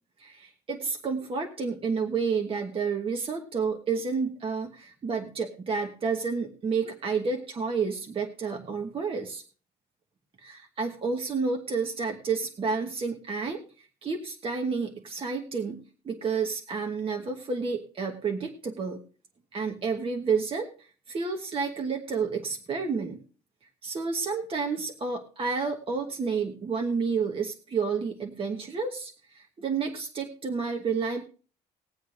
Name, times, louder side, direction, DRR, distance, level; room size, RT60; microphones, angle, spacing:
voice 1, 0.2-9.4 10.4-19.0 19.5-23.2 23.8-31.2, right 5 dB, 35° right, 3 dB, 1.2 m, -30 dB
20.5 x 7.9 x 2.5 m, 0.38 s
cardioid pair, 110°, 17 cm